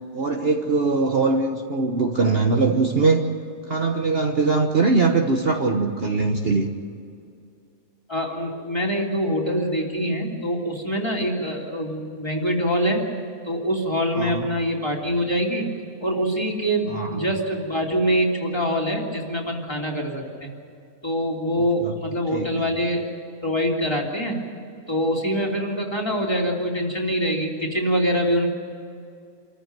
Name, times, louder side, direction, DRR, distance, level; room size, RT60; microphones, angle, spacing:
voice 1, 0.1-3.3 3.7-6.7 14.2-14.5 16.9-17.2 21.8-21.9 22.3-22.5, right 3 dB, 45° right, 2 dB, 1.4 m, -21 dB
voice 2, 8.1-13.1 13.5-15.7 16.0-20.5 21.0-23.0 23.4-24.4 24.9-28.5, equal, 15° left, -1 dB, 3.3 m, -24 dB
27.0 x 14.5 x 9.2 m, 2.4 s
omnidirectional pair, 1.5 m